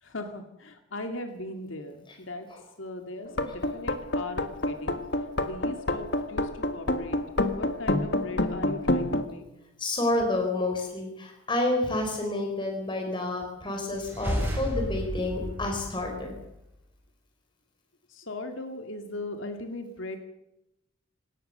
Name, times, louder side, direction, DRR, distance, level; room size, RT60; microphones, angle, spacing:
voice 1, 0.0-2.5 2.8-7.2 7.5-9.5 18.1-20.2, left 2 dB, 75° left, 6 dB, 2.3 m, -39 dB
sound 1, 3.3-9.2, left 1 dB, 55° left, 1.7 m, -27 dB
voice 2, 9.8-16.3, left 2 dB, 25° left, 2 dB, 4.8 m, -29 dB
sound 2, 13.9-16.7, equal, 10° right, 7.3 m, -33 dB
26.5 x 18.0 x 6.8 m, 0.85 s
head